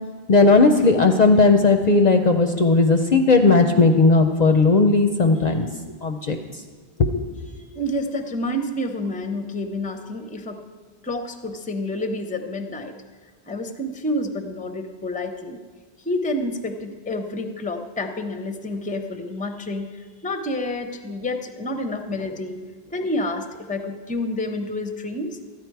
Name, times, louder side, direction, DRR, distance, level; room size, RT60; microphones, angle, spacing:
voice 1, 0.3-5.7 6.0-6.4 7.0-7.2, left 3 dB, 50° left, 5 dB, 0.6 m, -16 dB
voice 2, 7.5-10.6 11.0-12.9 13.5-15.6 16.0-22.6 22.9-25.4, left 1 dB, 10° left, 7 dB, 0.6 m, -29 dB
13.5 x 9.7 x 4.6 m, 1.4 s
omnidirectional pair, 1.1 m